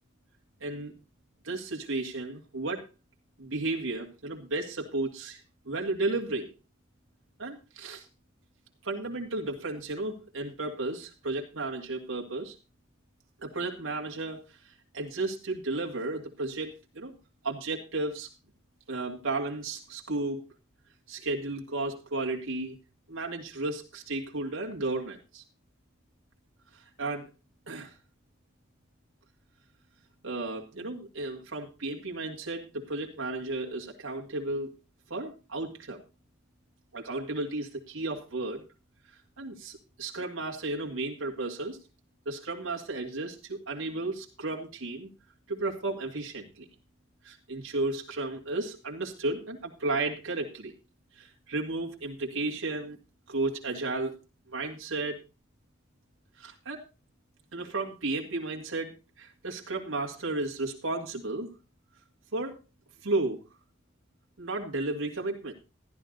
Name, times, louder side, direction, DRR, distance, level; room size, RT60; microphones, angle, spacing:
voice 1, 0.6-0.9 1.4-2.8 3.4-6.5 7.4-8.1 8.8-12.6 13.4-17.1 17.4-18.3 18.9-20.4 21.1-22.8 23.1-25.4 26.7-27.3 27.7-27.9 30.2-34.7 35.1-36.0 36.9-38.6 39.4-41.8 42.3-45.1 45.5-46.7 47.2-50.7 51.2-53.0 53.3-54.2 54.5-55.2 56.4-56.8 57.5-61.5 62.3-62.6 63.0-63.4 64.4-65.5, right 2 dB, 85° right, -1 dB, 2.5 m, -33 dB
14.0 x 11.5 x 4.0 m, 0.29 s
head